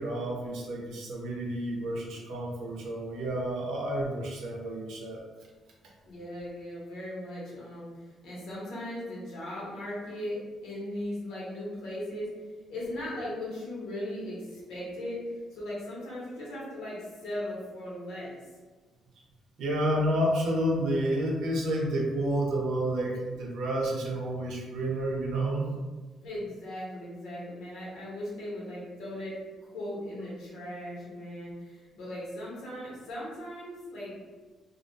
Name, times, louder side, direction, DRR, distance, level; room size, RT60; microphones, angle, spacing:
voice 1, 0.0-5.2 19.6-25.7, right 1 dB, 80° right, -1 dB, 0.6 m, -30 dB
voice 2, 6.0-12.3 12.7-18.4 26.2-34.2, left 1 dB, 85° left, -6 dB, 1.0 m, -38 dB
2.4 x 2.1 x 2.6 m, 1.3 s
cardioid pair, 90°, 0 cm